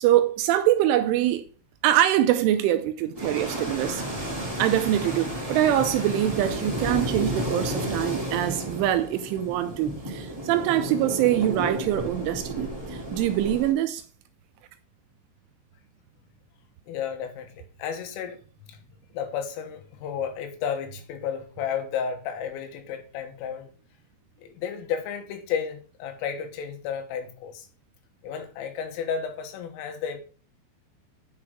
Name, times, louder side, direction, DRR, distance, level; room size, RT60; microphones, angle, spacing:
voice 1, 0.0-1.4 1.8-4.1 4.6-14.0, right 12 dB, 85° right, 2.9 m, -24 dB
sound 1, 3.1-13.7, right 1 dB, 25° right, 0.5 m, -32 dB
voice 2, 16.9-18.4 18.7-18.9 19.1-23.7 24.4-27.7 28.2-30.2, left 7 dB, 80° left, 3.7 m, -32 dB
9.8 x 6.0 x 3.6 m
omnidirectional pair, 5.9 m